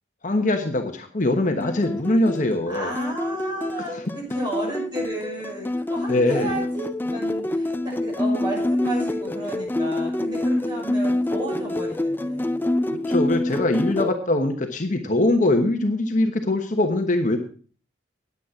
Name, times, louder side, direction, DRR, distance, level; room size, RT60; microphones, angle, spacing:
voice 1, 0.2-2.9 3.8-4.0 6.1-6.6 12.9-17.4, left 1 dB, 45° left, 5 dB, 1.2 m, -22 dB
sound 1, 1.6-14.1, left 1 dB, 10° left, 0.4 m, -26 dB
voice 2, 2.7-12.6, right 1 dB, 25° right, -3 dB, 6.1 m, -33 dB
9.6 x 9.3 x 5.8 m, 0.42 s
head